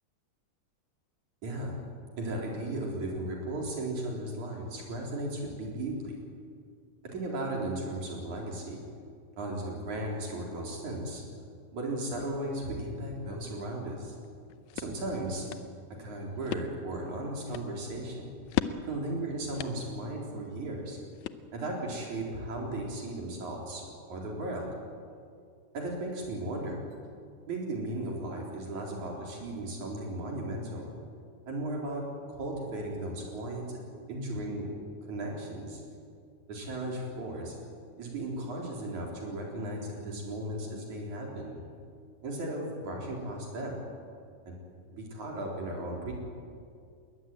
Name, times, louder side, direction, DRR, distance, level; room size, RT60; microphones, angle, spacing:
voice 1, 1.4-1.7 2.2-6.2 7.1-8.8 9.4-11.2 11.7-14.2 14.7-15.5 16.0-18.3 18.9-21.0 21.5-24.7 25.7-26.8 27.5-30.9 31.5-32.0 32.3-33.8 34.1-34.7 35.1-35.8 36.5-37.6 38.0-41.6 42.2-43.8 44.5-44.6 44.9-46.1, right 1 dB, 80° right, -1 dB, 5.5 m, -36 dB
sound 1, 14.2-21.9, left 12 dB, 80° left, 2.1 m, -39 dB
21.5 x 19.5 x 9.2 m, 2.3 s
omnidirectional pair, 3.3 m